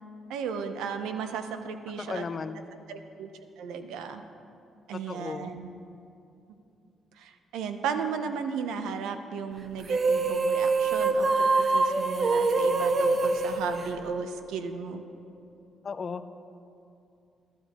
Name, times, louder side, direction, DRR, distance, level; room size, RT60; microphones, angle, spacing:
voice 1, 0.3-2.3 2.9-3.3 3.6-4.2 4.9-5.7 7.2-15.0, right 6 dB, 90° right, 8 dB, 0.7 m, -35 dB
voice 2, 2.0-2.6 5.1-5.5 15.8-16.2, left 5 dB, 40° left, 11 dB, 0.5 m, -35 dB
sound 1, 9.8-14.5, right 3 dB, 45° right, 0.7 m, -25 dB
14.0 x 12.5 x 3.0 m, 2.6 s
cardioid pair, 90°, 0 cm